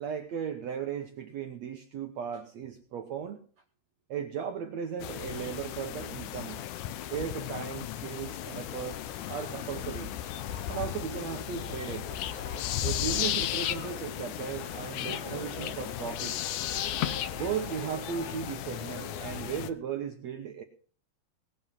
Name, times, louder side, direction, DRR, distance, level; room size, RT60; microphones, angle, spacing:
voice 1, 0.0-3.4 4.1-6.6 7.1-9.0 9.3-10.1 10.7-12.1 12.8-16.3 17.3-20.6, right 8 dB, 75° right, 4 dB, 1.6 m, -36 dB
sound 1, 5.0-19.7, left 12 dB, 80° left, 1.9 m, -35 dB
sound 2, 9.1-19.6, left 3 dB, 60° left, 3.7 m, -45 dB
19.5 x 7.2 x 5.6 m, 0.43 s
omnidirectional pair, 4.4 m